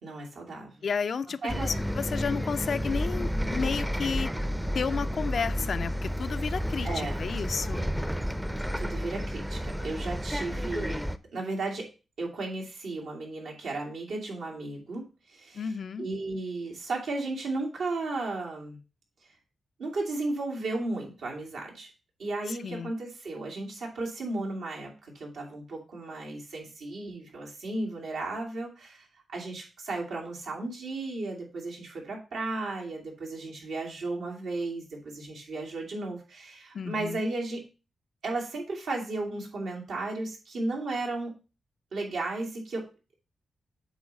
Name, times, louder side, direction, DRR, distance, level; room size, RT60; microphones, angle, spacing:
voice 1, 0.0-0.8 1.4-1.7 2.1-2.3 6.8-7.2 8.8-11.0 11.3-11.9 12.2-15.7 16.0-18.8 19.8-21.9 22.2-37.6 38.2-41.4 41.9-42.8, right 2 dB, 85° right, 0 dB, 2.3 m, -34 dB
voice 2, 0.8-4.3 4.7-7.9 15.5-16.1 22.5-22.9 36.7-37.3, left 6 dB, 65° left, 13 dB, 0.4 m, -32 dB
Bus, 1.5-11.2, equal, 5° right, 0.5 m, -31 dB
8.0 x 3.2 x 5.2 m, 0.31 s
cardioid pair, 65°, 0 cm